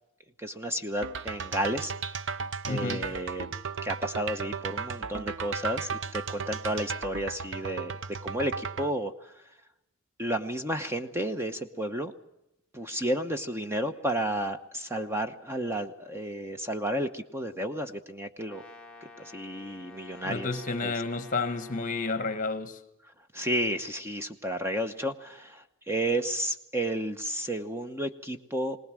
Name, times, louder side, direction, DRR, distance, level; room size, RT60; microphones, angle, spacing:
voice 1, 0.4-1.9 2.6-3.5 3.8-7.9 8.2-9.4 10.2-12.1 12.7-18.6 19.2-20.9 23.3-28.8, right 1 dB, 10° right, 0.9 m, -32 dB
sound 1, 1.0-8.9, right 5 dB, 60° right, 0.8 m, -35 dB
voice 2, 2.7-3.1 20.2-22.8, left 3 dB, 40° left, 1.4 m, -31 dB
Brass instrument, 18.4-22.5, left 3 dB, 5° left, 2.0 m, -50 dB
21.5 x 19.5 x 7.5 m
head